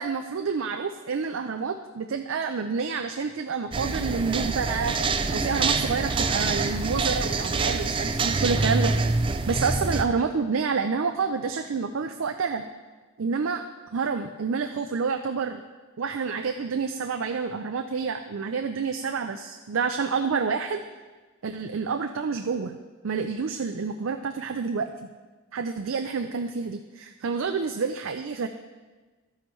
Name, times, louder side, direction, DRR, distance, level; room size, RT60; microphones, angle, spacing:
voice 1, 0.0-8.9 9.5-12.6 13.2-13.6 13.9-15.6 16.0-20.8 21.4-22.7 23.0-24.9 25.5-28.5, right 5 dB, 75° right, 6 dB, 0.5 m, -28 dB
sound 1, 3.7-10.1, right 3 dB, 25° right, 0.5 m, -26 dB
12.5 x 9.6 x 3.2 m, 1.3 s
head